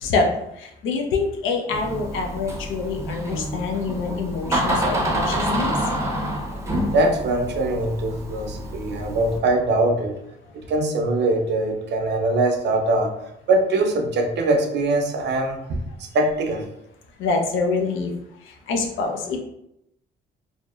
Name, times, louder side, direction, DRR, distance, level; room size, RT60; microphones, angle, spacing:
voice 1, 0.0-0.3 0.8-5.7 17.2-18.1 18.7-19.4, left 4 dB, 80° left, 2 dB, 0.5 m, -25 dB
Door, 1.7-9.4, right 1 dB, 15° right, 0.5 m, -27 dB
voice 2, 6.9-10.1 10.5-13.1 13.5-16.7, right 2 dB, 60° right, 4 dB, 0.5 m, -22 dB
2.8 x 2.0 x 2.2 m, 0.81 s
cardioid pair, 90°, 20 cm